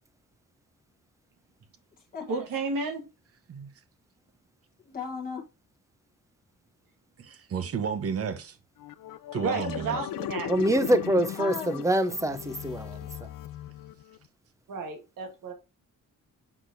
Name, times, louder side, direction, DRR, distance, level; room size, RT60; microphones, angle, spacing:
voice 1, 2.3-3.1 9.4-10.5 14.7-15.5, right 4 dB, 85° right, 1.4 m, -32 dB
voice 2, 4.8-5.4 11.4-11.8, left 5 dB, 25° left, 1.1 m, -36 dB
voice 3, 7.2-8.6 9.3-10.0, right 6 dB, 45° right, 0.9 m, -32 dB
sound 1, 8.8-14.2, left 12 dB, 85° left, 0.5 m, -37 dB
voice 4, 10.5-13.3, right 1 dB, 10° right, 0.6 m, -25 dB
6.5 x 5.9 x 2.6 m
wide cardioid pair, 165°, 32 cm